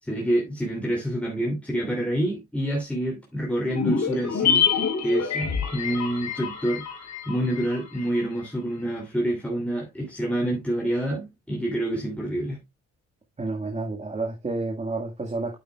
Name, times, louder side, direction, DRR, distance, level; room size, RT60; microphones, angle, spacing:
voice 1, 0.0-4.7 5.0-12.6, right 1 dB, 5° left, 2.8 m, -27 dB
sound 1, 3.7-8.2 8.4-8.5, left 7 dB, 65° left, 3.5 m, -26 dB
voice 2, 13.4-15.6, right 3 dB, 20° right, 1.7 m, -30 dB
8.9 x 8.3 x 2.3 m
cardioid pair, 90°, 30 cm